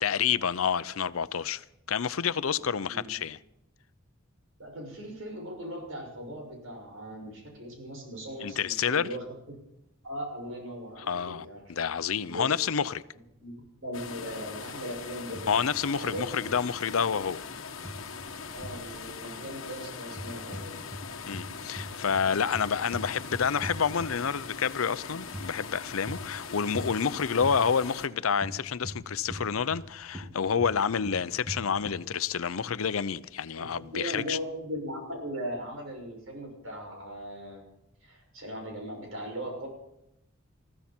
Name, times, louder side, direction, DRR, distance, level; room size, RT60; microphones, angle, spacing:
voice 1, 0.0-3.4 8.4-9.1 11.1-13.0 15.5-17.4 21.3-34.4, left 7 dB, 90° left, 0.6 m, -29 dB
voice 2, 2.6-3.1 4.6-9.6 10.0-11.6 12.2-12.5 13.4-15.5 15.9-16.5 18.5-20.8 33.5-37.6 38.0-39.7, equal, 75° right, 6.5 m, -39 dB
sound 1, 13.9-28.1, left 5 dB, 75° left, 1.2 m, -41 dB
sound 2, 15.3-15.8 16.1-16.6 17.8-18.9 20.1-21.1 21.3-24.4 25.3-25.5 26.1-26.4 26.7-27.0 27.4-27.6 28.4-29.9 30.1-32.1, equal, 10° right, 2.2 m, -40 dB
21.0 x 14.5 x 4.4 m
head